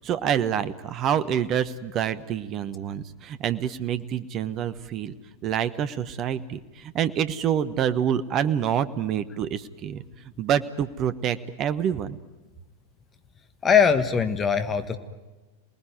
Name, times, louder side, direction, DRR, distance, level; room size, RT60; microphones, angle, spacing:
voice 1, 0.0-5.1 5.4-10.0 10.4-12.2, right 9 dB, 35° right, 13 dB, 1.1 m, -27 dB
voice 2, 13.6-15.0, left 6 dB, 20° left, 9 dB, 1.4 m, -21 dB
28.5 x 19.5 x 9.4 m, 1.2 s
figure-of-eight pair, 90°, 0 cm